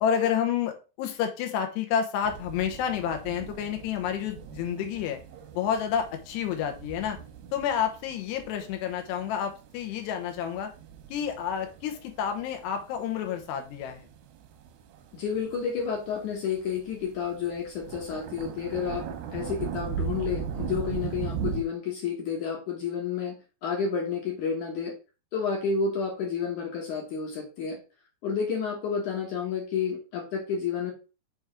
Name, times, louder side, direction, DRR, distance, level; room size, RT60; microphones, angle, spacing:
voice 1, 0.0-5.2 5.5-7.2 7.5-10.7 11.1-14.1, left 8 dB, 85° left, 5 dB, 3.1 m, -29 dB
sound 1, 2.2-21.6, right 7 dB, 75° right, 2.8 m, -39 dB
voice 2, 15.1-19.1 19.3-23.4 23.6-24.9 25.3-27.8 28.2-30.9, left 6 dB, 65° left, 0 dB, 2.1 m, -30 dB
7.0 x 3.5 x 4.9 m, 0.32 s
omnidirectional pair, 4.8 m